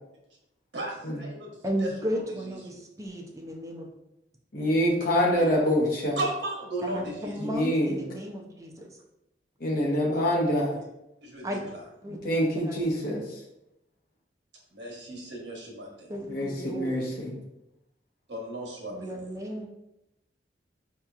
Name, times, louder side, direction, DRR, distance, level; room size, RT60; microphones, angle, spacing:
voice 1, 0.7-2.6 5.7-5.8 6.2-7.4 11.2-11.8 14.7-16.1 18.3-19.2, right 1 dB, 75° right, -1 dB, 1.1 m, -36 dB
voice 2, 1.6-3.9 6.8-9.0 11.4-11.7 12.0-12.2 12.6-13.2 16.1-17.0 18.9-19.7, equal, 20° right, 1 dB, 0.5 m, -34 dB
voice 3, 4.5-6.2 7.4-8.0 9.6-10.8 12.2-13.4 16.3-17.3, equal, 55° left, -2 dB, 0.9 m, -25 dB
4.8 x 2.9 x 2.3 m, 0.87 s
head